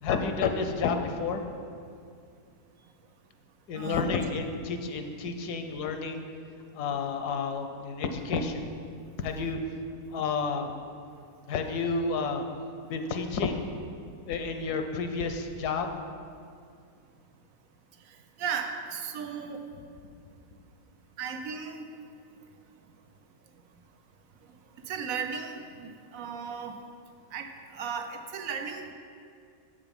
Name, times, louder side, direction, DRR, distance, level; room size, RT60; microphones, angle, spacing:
voice 1, 0.0-1.4 3.7-6.2 6.7-8.7 9.2-9.6 10.1-10.7 11.5-12.5 12.9-13.8 14.3-15.9, left 4 dB, 75° left, 6 dB, 1.2 m, -30 dB
voice 2, 3.7-4.2 18.4-19.7 21.2-21.9 24.9-26.8 27.3-28.9, right 6 dB, 65° right, 6 dB, 1.0 m, -35 dB
7.9 x 7.1 x 5.3 m, 2.3 s
omnidirectional pair, 1.8 m